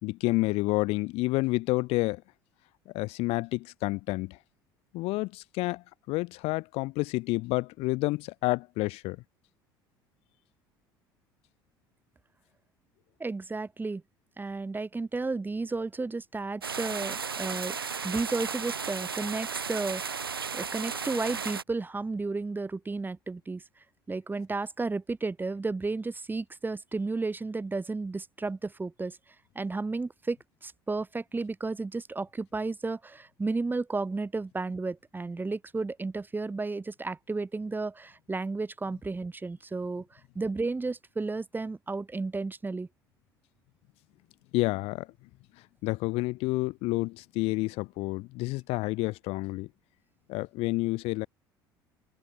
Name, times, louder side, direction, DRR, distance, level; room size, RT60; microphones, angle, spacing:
voice 1, 0.0-2.2 2.9-4.4 4.9-9.2 44.5-45.1 45.8-49.7 50.3-51.3, left 22 dB, 60° left, 1.8 m, -29 dB
voice 2, 13.2-14.0 14.4-17.8 18.0-23.6 24.1-29.2 29.6-30.4 30.6-40.1 40.4-42.9, right 3 dB, 15° right, 1.9 m, -33 dB
sound 1, 16.6-21.6, right 6 dB, 85° right, 2.3 m, -34 dB
figure-of-eight pair, 60°, 12 cm